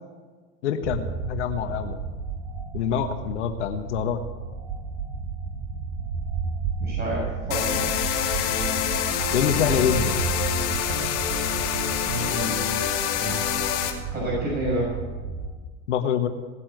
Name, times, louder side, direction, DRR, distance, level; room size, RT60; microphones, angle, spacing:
voice 1, 0.6-2.0 2.7-4.2 9.3-10.2 15.9-16.3, left 8 dB, 85° left, 7 dB, 1.5 m, -25 dB
sound 1, 0.8-15.5, right 5 dB, 65° right, 5.9 m, -32 dB
voice 2, 6.8-7.8 12.1-12.8 13.2-13.8 14.1-14.9, right 1 dB, 25° right, -4 dB, 6.9 m, -30 dB
sound 2, 7.5-13.9, left 9 dB, 65° left, 2.9 m, -26 dB
18.5 x 8.6 x 8.0 m, 1.4 s
hypercardioid pair, 95°, 34 cm